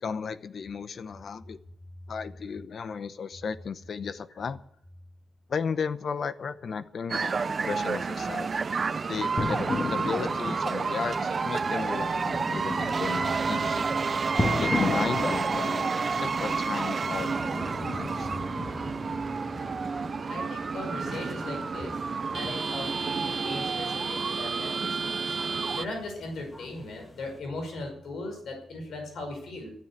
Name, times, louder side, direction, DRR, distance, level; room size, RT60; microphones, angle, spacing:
voice 1, 0.0-1.6 2.1-4.6 5.5-8.6 9.1-9.6 9.9-13.9 14.6-18.3, left 6 dB, 60° left, 14 dB, 0.9 m, -34 dB
sound 1, 7.1-25.8, right 5 dB, 45° right, 0.5 m, -30 dB
sound 2, 9.4-27.4, left 2 dB, 30° left, 2.2 m, -36 dB
voice 2, 20.3-22.0 22.3-25.2 25.8-29.7, left 2 dB, 80° left, 3 dB, 5.4 m, -38 dB
13.5 x 9.3 x 9.0 m, 0.69 s
cardioid pair, 95°, 0 cm